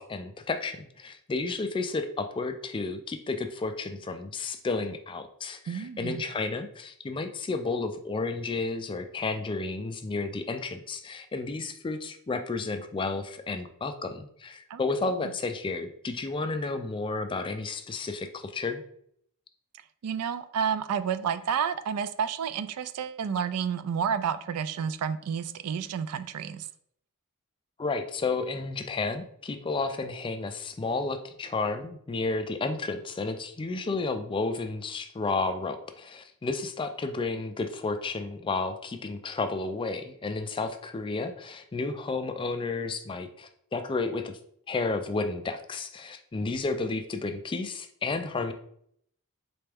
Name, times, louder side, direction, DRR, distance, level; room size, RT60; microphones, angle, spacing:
voice 1, 0.0-18.8 27.8-44.4 44.7-48.5, left 3 dB, 20° left, 7 dB, 0.3 m, -32 dB
voice 2, 5.7-6.2 14.7-14.8 15.2-15.3 20.0-26.7, right 7 dB, 80° right, 11 dB, 0.3 m, -30 dB
4.2 x 3.3 x 3.4 m, 0.67 s
head